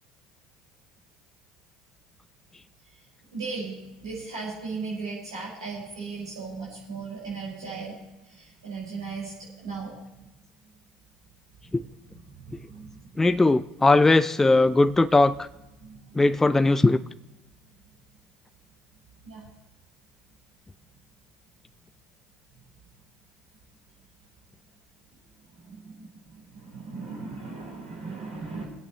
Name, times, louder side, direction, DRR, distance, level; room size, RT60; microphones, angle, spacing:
voice 1, 3.3-8.0 8.3-9.3 9.6-10.0 12.1-12.2 12.5-13.1 15.8-16.2 19.2-19.4 25.5-26.1 26.4-28.6, right 4 dB, 90° right, -7 dB, 5.5 m, -37 dB
voice 2, 13.2-15.4 16.2-17.0, left 2 dB, 10° left, 13 dB, 0.4 m, -19 dB
24.0 x 8.6 x 3.2 m, 0.98 s
hypercardioid pair, 70°, 3 cm